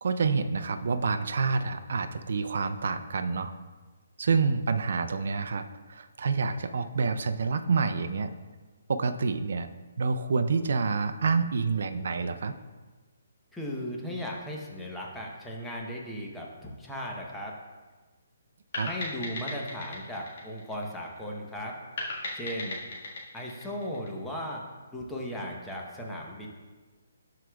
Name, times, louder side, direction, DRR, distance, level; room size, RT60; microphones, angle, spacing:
voice 1, 0.0-3.5 4.2-8.3 8.9-9.7 10.0-12.5 18.8-18.9, right 4 dB, 65° right, 9 dB, 0.5 m, -28 dB
voice 2, 13.5-17.6 18.8-21.8 22.3-22.8 23.3-24.6 24.9-26.5, equal, 5° left, -2 dB, 0.9 m, -37 dB
sound 1, 18.7-21.3 22.0-24.5, left 2 dB, 55° left, 1.7 m, -37 dB
12.5 x 4.8 x 2.3 m, 1.3 s
hypercardioid pair, 160°, 0 cm